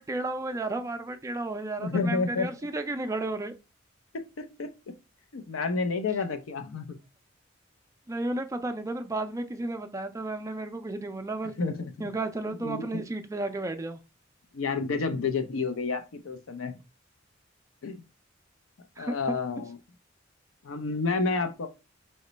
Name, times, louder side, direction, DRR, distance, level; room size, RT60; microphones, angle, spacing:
voice 1, 0.0-3.5 8.1-11.5 12.0-14.0 19.0-19.3, right 2 dB, 15° right, 0.3 m, -33 dB
voice 2, 1.8-2.5 4.1-4.7 5.3-7.0 11.6-12.1 12.5-13.0 14.5-16.8 17.8-18.0 19.0-19.8 20.6-21.7, left 4 dB, 85° left, 0.5 m, -30 dB
3.0 x 2.2 x 3.9 m
head